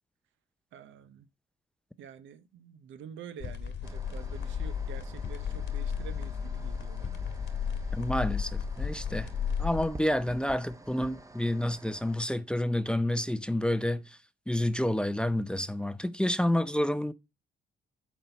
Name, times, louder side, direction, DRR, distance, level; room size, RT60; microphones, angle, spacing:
voice 1, 0.7-1.3 2.0-7.2, right 8 dB, 75° right, 0.8 m, -48 dB
sound 1, 3.4-9.9, left 7 dB, 65° left, 1.7 m, -33 dB
sound 2, 3.8-12.2, right 2 dB, 15° right, 0.9 m, -50 dB
voice 2, 7.9-9.3 9.6-14.0 14.5-17.1, left 1 dB, 5° left, 0.5 m, -29 dB
7.3 x 4.3 x 6.9 m
cardioid pair, 90°, 20 cm